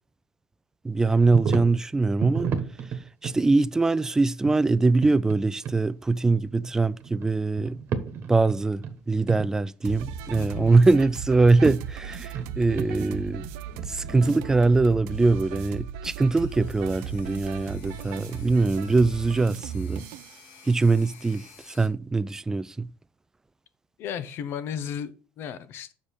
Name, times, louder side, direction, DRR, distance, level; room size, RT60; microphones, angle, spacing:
voice 1, 0.8-2.5 3.2-7.8 8.3-13.5 13.9-20.1 20.7-22.9, right 3 dB, 10° right, 0.3 m, -22 dB
sound 1, 1.3-1.8 2.2-3.4 4.4-5.4 5.6-5.8 6.5-7.3 7.6-9.0 9.3-9.5 9.8-10.8 11.3-11.7 12.1-14.8, right 6 dB, 50° right, 1.3 m, -32 dB
sound 2, 9.8-20.4, right 8 dB, 80° right, 0.6 m, -37 dB
voice 2, 10.4-10.7 24.0-25.9, left 8 dB, 55° left, 0.9 m, -34 dB
sound 3, 16.1-21.9, left 7 dB, 80° left, 1.8 m, -53 dB
6.4 x 4.9 x 5.6 m
supercardioid pair, 110°, 5 cm